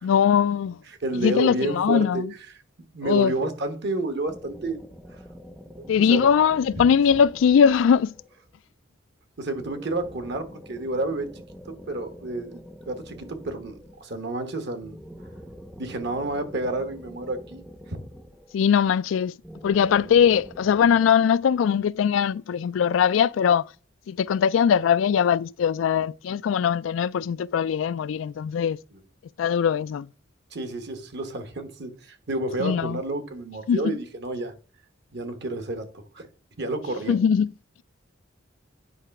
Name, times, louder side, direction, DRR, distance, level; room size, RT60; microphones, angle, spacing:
voice 1, 0.0-0.8 1.2-2.3 3.0-3.3 5.9-8.1 18.5-19.3 19.6-23.7 24.1-28.8 29.4-30.1 32.6-33.0 33.7-33.8 37.1-37.5, left 7 dB, 85° left, 0.3 m, -21 dB
voice 2, 0.9-2.5 2.9-4.8 5.9-6.2 9.4-12.6 12.9-15.0 15.8-17.6 17.9-18.0 28.9-29.0 30.5-34.5 35.1-36.3 36.6-37.2, right 2 dB, 60° right, 1.2 m, -30 dB
sound 1, 4.3-8.4 9.5-14.2 14.8-18.8 19.4-21.1, equal, ahead, 0.5 m, -45 dB
9.3 x 3.3 x 5.8 m
head